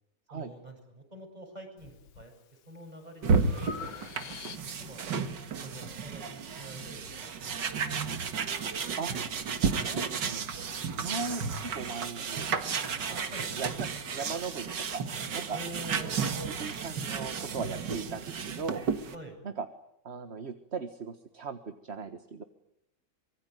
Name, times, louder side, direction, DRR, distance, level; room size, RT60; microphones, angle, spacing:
voice 1, 0.3-2.3 2.7-4.0 4.4-5.2 5.6-8.0 13.3-13.5 15.5-16.2 19.1-19.4, right 1 dB, 20° right, 3 dB, 7.7 m, -47 dB
Breathing, 1.8-2.3 2.8-5.0, left 7 dB, 80° left, 2.0 m, -45 dB
sound 1, 3.2-19.2, right 5 dB, 65° right, 2.3 m, -33 dB
voice 2, 9.7-10.5 11.0-12.8 13.1-13.3 13.5-15.0 15.3-15.6 16.3-18.9 19.4-19.7 20.0-22.4, right 4 dB, 35° right, 8 dB, 1.6 m, -38 dB
25.5 x 23.5 x 9.4 m, 0.77 s
omnidirectional pair, 2.1 m